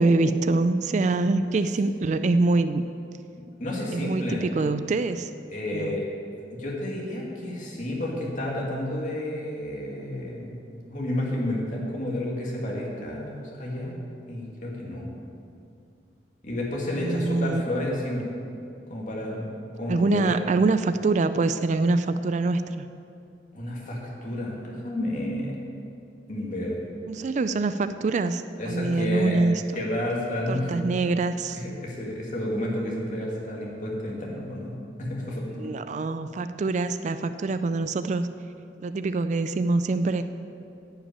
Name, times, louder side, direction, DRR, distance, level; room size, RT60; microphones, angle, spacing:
voice 1, 0.0-2.8 3.9-5.3 5.7-6.0 16.9-17.6 19.9-22.9 27.1-29.8 30.5-31.6 35.6-38.3 38.8-40.2, right 3 dB, 40° right, 11 dB, 0.3 m, -25 dB
voice 2, 3.6-4.4 5.5-6.0 6.5-14.0 14.3-15.1 16.4-18.3 18.9-20.4 23.5-25.6 26.3-26.7 28.6-29.4 29.7-30.9 31.5-34.7 35.0-35.7, left 1 dB, 45° left, -3 dB, 2.2 m, -31 dB
11.0 x 5.7 x 8.8 m, 2.5 s
head